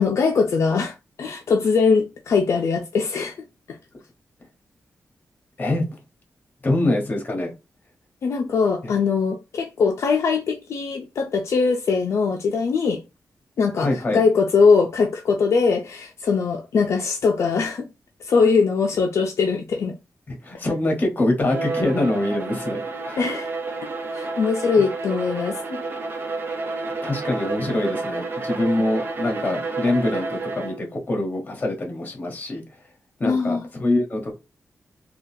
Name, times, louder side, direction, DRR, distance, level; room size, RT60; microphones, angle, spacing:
voice 1, 0.0-3.4 3.7-3.8 8.2-13.0 13.6-17.9 18.2-20.0 23.2-23.5 23.8-25.8 33.2-33.7, left 5 dB, 65° left, 0.4 m, -21 dB
voice 2, 5.6-6.0 6.6-7.5 8.8-8.9 13.8-14.2 20.3-23.2 24.8-24.9 27.0-32.6 33.2-34.3, left 1 dB, 35° left, 1.0 m, -24 dB
Bowed string instrument, 21.4-30.9, right 3 dB, 45° right, 0.6 m, -30 dB
3.7 x 2.3 x 2.6 m
wide cardioid pair, 140°, 5 cm